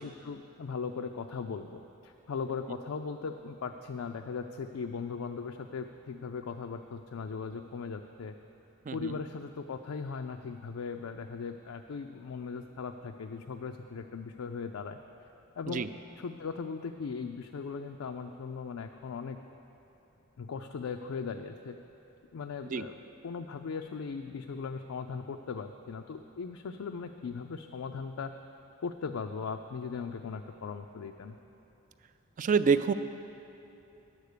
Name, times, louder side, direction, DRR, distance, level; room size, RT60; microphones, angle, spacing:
voice 1, 0.0-8.3 8.9-15.0 15.6-15.9 16.2-19.4 20.4-21.8 22.3-23.0 23.2-28.3 28.8-31.4, left 5 dB, 80° left, 5 dB, 0.4 m, -38 dB
voice 2, 8.9-9.2 15.7-15.9 22.6-22.8 32.4-32.9, right 5 dB, 35° right, 11 dB, 0.3 m, -27 dB
10.5 x 8.1 x 6.6 m, 2.9 s
head